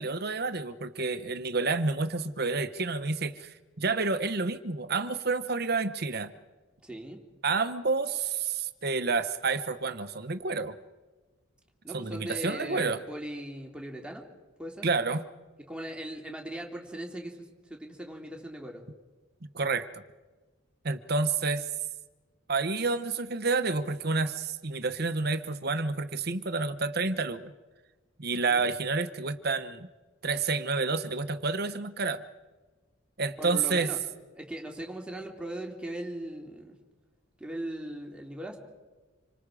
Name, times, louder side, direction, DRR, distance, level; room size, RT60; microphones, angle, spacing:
voice 1, 0.0-6.3 7.4-10.8 11.9-13.0 14.8-15.2 19.5-20.0 20.8-21.7 22.5-27.5 28.2-29.9 30.2-32.2 33.2-33.9, right 4 dB, 50° right, 12 dB, 1.1 m, -29 dB
voice 2, 6.8-7.2 11.8-14.2 14.6-14.9 15.7-18.8 28.3-28.6 33.4-34.0 34.4-36.7 37.4-38.6, right 1 dB, 5° right, 1 dB, 2.8 m, -39 dB
27.0 x 25.0 x 5.0 m, 1.3 s
head